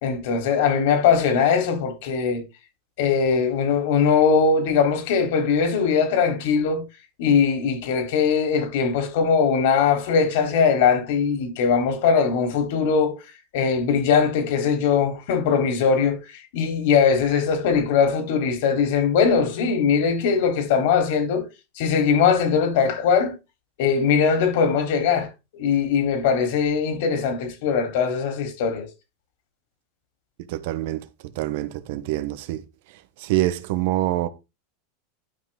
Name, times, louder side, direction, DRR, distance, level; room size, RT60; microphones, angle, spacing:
voice 1, 0.0-2.4 3.0-6.8 7.2-13.2 13.5-21.4 21.8-23.3 23.8-28.9, left 6 dB, 70° left, 3.7 m, -21 dB
voice 2, 30.5-31.0 31.3-32.6 33.2-34.3, right 15 dB, 65° right, 1.2 m, -25 dB
12.0 x 5.8 x 3.8 m
supercardioid pair, 135°, 0 cm